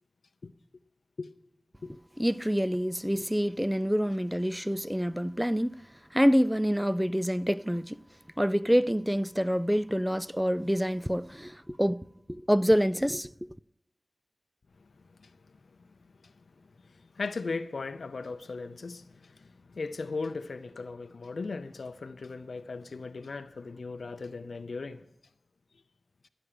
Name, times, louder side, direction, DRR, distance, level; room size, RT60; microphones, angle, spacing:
voice 1, 2.2-5.8 6.1-8.0 8.4-13.3, equal, 5° right, 0.3 m, -27 dB
voice 2, 16.8-25.0, left 4 dB, 75° left, 0.6 m, -38 dB
13.5 x 9.9 x 4.9 m
wide cardioid pair, 65°, 0 cm